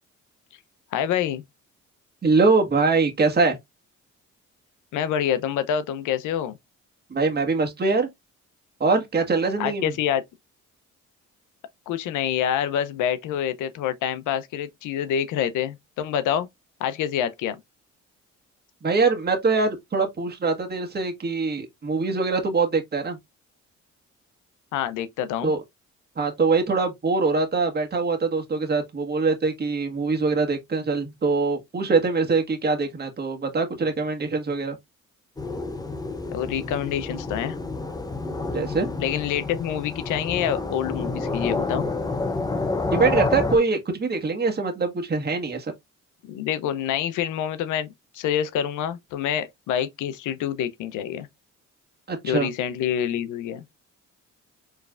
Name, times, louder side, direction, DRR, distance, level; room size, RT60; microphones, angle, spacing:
voice 1, 0.9-1.4 4.9-6.6 9.6-10.2 11.9-16.5 16.8-17.6 24.7-25.5 36.3-37.6 39.0-41.9 46.2-47.9 48.1-51.3 52.2-53.8, left 9 dB, 85° left, 0.6 m, -27 dB
voice 2, 2.2-3.6 7.1-8.1 8.8-9.9 18.8-23.2 25.4-25.6 26.2-34.7 38.5-38.9 42.9-45.7 52.1-52.5, right 4 dB, 35° right, 1.4 m, -23 dB
sound 1, 35.4-43.6, left 3 dB, 15° left, 0.7 m, -29 dB
4.7 x 3.2 x 2.4 m
cardioid pair, 90°, 30 cm